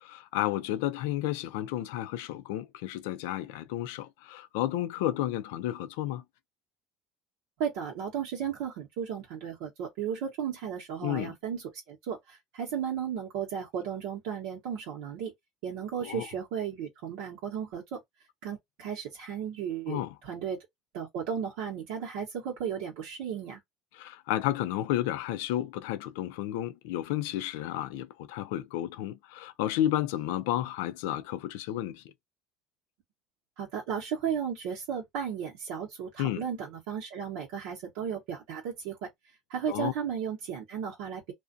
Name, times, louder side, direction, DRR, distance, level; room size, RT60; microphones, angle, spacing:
voice 1, 0.0-6.2 11.0-11.3 16.0-16.3 19.9-20.1 23.9-32.0 36.2-36.4 39.7-39.9, left 13 dB, 85° left, 0.3 m, -32 dB
voice 2, 7.6-15.3 15.6-18.0 18.4-20.6 20.9-23.6 33.6-39.0 39.5-41.3, right 8 dB, 80° right, 0.8 m, -35 dB
2.5 x 2.2 x 2.5 m
supercardioid pair, 90°, 0 cm